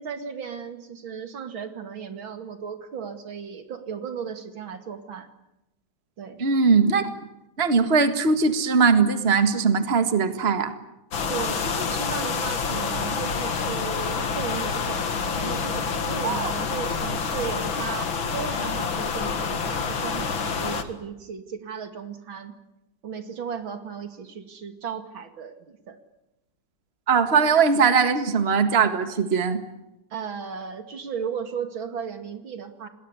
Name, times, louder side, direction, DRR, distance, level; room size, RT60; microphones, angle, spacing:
voice 1, 0.0-5.3 6.2-6.4 11.3-22.5 23.0-26.0 30.1-32.9, right 7 dB, 70° right, 8 dB, 3.0 m, -35 dB
voice 2, 6.4-7.1 7.6-10.7 16.2-16.5 27.1-29.6, right 5 dB, 30° right, 9 dB, 1.9 m, -20 dB
sound 1, 11.1-20.8, left 5 dB, 70° left, 2.7 m, -27 dB
28.5 x 20.0 x 9.8 m, 0.91 s
omnidirectional pair, 2.2 m